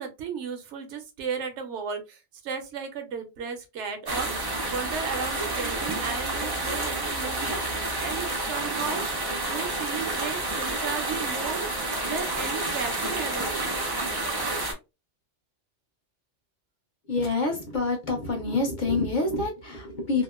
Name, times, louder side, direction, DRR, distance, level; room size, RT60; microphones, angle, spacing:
voice 1, 0.0-9.0 9.5-13.7, right 6 dB, 75° right, 0.9 m, -35 dB
sound 1, 4.1-14.7, right 2 dB, 40° right, 0.3 m, -29 dB
voice 2, 17.0-20.2, left 3 dB, 50° left, 0.7 m, -27 dB
2.8 x 2.1 x 2.2 m
omnidirectional pair, 1.2 m